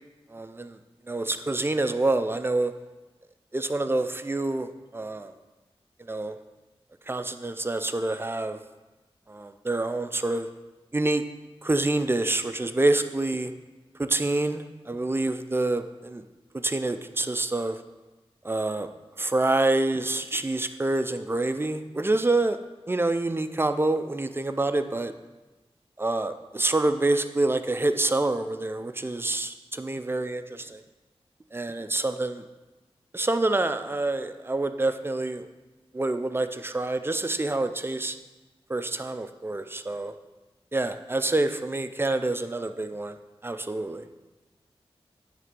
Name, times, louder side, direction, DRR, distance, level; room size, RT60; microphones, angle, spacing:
voice 1, 0.3-0.8 1.1-2.7 3.5-5.3 6.0-6.4 7.1-8.6 9.3-10.5 10.9-11.2 11.6-13.5 14.0-16.2 16.6-17.8 18.4-18.9 19.2-22.6 22.9-25.1 26.0-30.8 31.5-32.5 33.1-35.5 35.9-38.2 38.7-40.1 40.7-44.1, right 2 dB, 20° right, 9 dB, 0.4 m, -27 dB
9.3 x 3.4 x 5.2 m, 1.2 s
wide cardioid pair, 70°, 10 cm